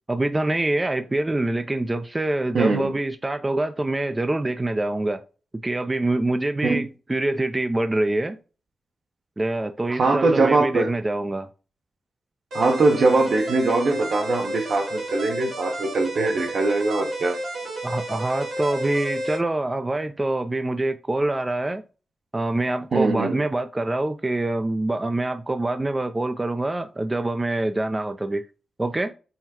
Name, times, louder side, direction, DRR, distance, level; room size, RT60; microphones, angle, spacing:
voice 1, 0.1-5.2 5.6-8.4 9.4-11.5 17.8-21.8 22.3-28.4 28.8-29.1, right 2 dB, 25° right, 0.4 m, -25 dB
voice 2, 2.5-2.9 6.6-6.8 9.9-10.9 12.5-17.4 22.9-23.4, right 3 dB, 70° right, 1.0 m, -21 dB
sound 1, 12.5-19.4, right 1 dB, 90° right, 2.3 m, -31 dB
5.6 x 2.2 x 2.9 m
supercardioid pair, 40°, 0 cm